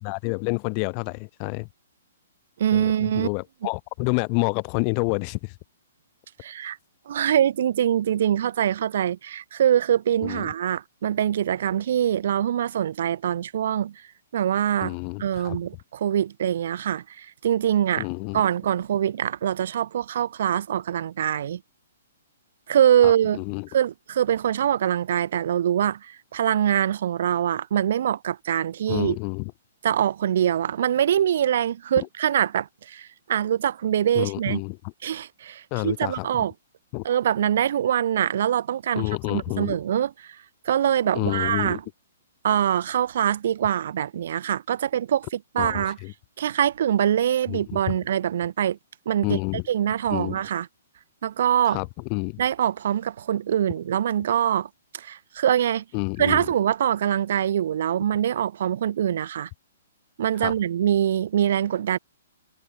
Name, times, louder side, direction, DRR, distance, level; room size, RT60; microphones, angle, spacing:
voice 1, 0.0-1.7 2.7-5.5 10.2-10.5 14.8-15.6 18.0-18.4 23.0-23.7 28.9-29.5 32.0-32.1 34.1-34.8 35.7-36.3 36.9-37.0 38.9-39.8 41.1-41.8 45.6-46.1 47.5-47.9 49.2-49.6 50.1-50.4 51.6-52.4 55.9-56.4 60.4-60.5, left 40 dB or more, 35° left, 4.8 m, -29 dB
voice 2, 2.6-3.3 6.4-6.8 7.1-14.0 14.3-18.1 18.3-21.6 22.7-23.4 23.7-29.2 29.8-34.6 35.0-36.5 37.0-40.4 40.6-41.8 42.4-46.0 46.4-48.8 49.0-49.4 49.7-50.7 51.2-51.8 52.4-55.8 56.2-59.5 60.2-62.0, right 10 dB, 50° right, 2.9 m, -24 dB
figure-of-eight pair, 115°, 0 cm